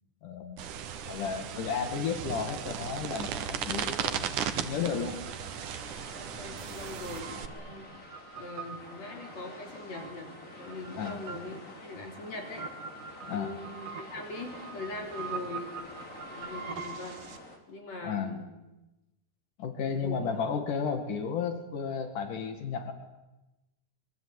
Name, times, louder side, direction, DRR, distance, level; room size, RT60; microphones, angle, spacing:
voice 1, 0.2-0.8 1.1-5.2 10.9-11.2 13.2-13.6 18.0-18.3 19.6-22.9, left 6 dB, 80° left, 7 dB, 3.6 m, -33 dB
sound 1, 0.6-7.5, right 8 dB, 80° right, 3.0 m, -36 dB
sound 2, 4.9-17.6, left 1 dB, 25° left, 4.2 m, -48 dB
voice 2, 6.1-8.1 8.4-10.3 10.5-12.7 13.3-15.8 16.2-17.2 17.7-18.4 19.8-20.4, left 2 dB, 55° left, 3 dB, 5.5 m, -41 dB
sound 3, 6.6-17.4, right 5 dB, 55° right, 3.1 m, -44 dB
26.0 x 22.5 x 9.7 m, 1.0 s
omnidirectional pair, 3.6 m